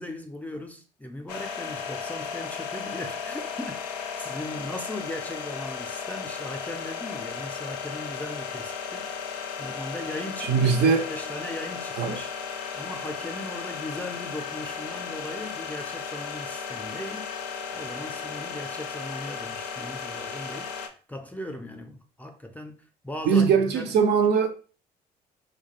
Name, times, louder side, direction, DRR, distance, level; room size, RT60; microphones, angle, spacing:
voice 1, 0.0-9.2 9.6-12.3 12.7-17.3 17.7-23.9, left 1 dB, 5° left, 0.4 m, -38 dB
sound 1, 1.3-20.9, left 6 dB, 75° left, 0.4 m, -35 dB
voice 2, 10.4-11.1 12.0-12.2 23.3-24.5, right 6 dB, 55° right, 0.5 m, -21 dB
2.3 x 2.2 x 2.9 m
hypercardioid pair, 55°, 21 cm